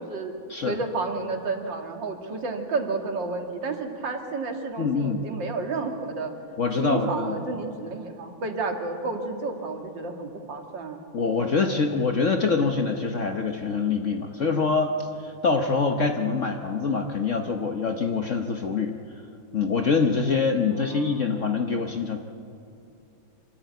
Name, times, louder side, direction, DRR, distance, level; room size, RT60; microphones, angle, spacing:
voice 1, 0.0-0.3 0.6-6.3 6.8-11.0 20.7-21.1, right 3 dB, 65° right, 3 dB, 2.6 m, -31 dB
voice 2, 4.8-5.2 6.6-7.4 11.1-19.0 19.5-22.2, left 4 dB, 50° left, 5 dB, 1.1 m, -25 dB
25.5 x 13.5 x 9.2 m, 2.8 s
omnidirectional pair, 2.2 m